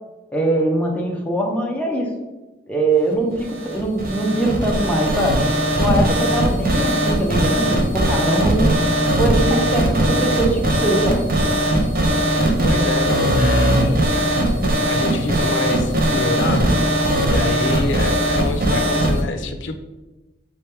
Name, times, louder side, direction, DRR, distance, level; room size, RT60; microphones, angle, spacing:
voice 1, 0.3-2.1 2.7-5.4 5.7-8.7 9.2-11.2, right 1 dB, 5° left, -1 dB, 0.6 m, -22 dB
sound 1, 3.3-19.2, right 1 dB, 50° right, 0.7 m, -19 dB
voice 2, 12.6-14.0 14.9-19.8, left 3 dB, 85° left, 7 dB, 0.4 m, -27 dB
3.4 x 3.3 x 4.5 m, 1.1 s
head